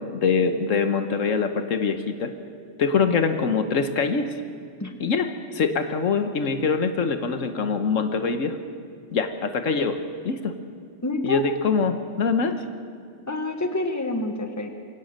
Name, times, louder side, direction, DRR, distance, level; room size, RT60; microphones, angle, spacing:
voice 1, 0.2-2.3 2.8-4.3 5.0-8.6 9.1-10.0 10.2-10.5 11.2-12.6, left 5 dB, 80° left, 8 dB, 1.5 m, -24 dB
voice 2, 11.0-11.4 13.3-14.7, left 2 dB, 15° left, 5 dB, 1.5 m, -27 dB
23.0 x 17.5 x 6.6 m, 2.2 s
omnidirectional pair, 1.3 m